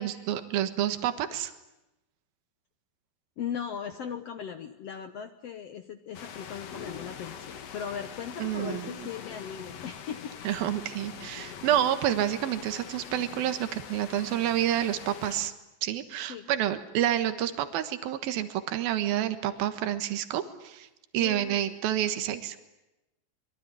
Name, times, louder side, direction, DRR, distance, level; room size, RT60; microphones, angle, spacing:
voice 1, 0.0-1.5 8.4-8.9 10.4-15.5 15.8-20.9 21.1-22.6, right 11 dB, 80° right, 9 dB, 3.3 m, -29 dB
voice 2, 3.4-10.4 16.2-16.5 21.2-21.7, left 7 dB, 70° left, 9 dB, 1.5 m, -38 dB
sound 1, 6.1-15.5, left 7 dB, 55° left, 2.2 m, -43 dB
25.5 x 23.0 x 9.9 m, 0.95 s
omnidirectional pair, 4.3 m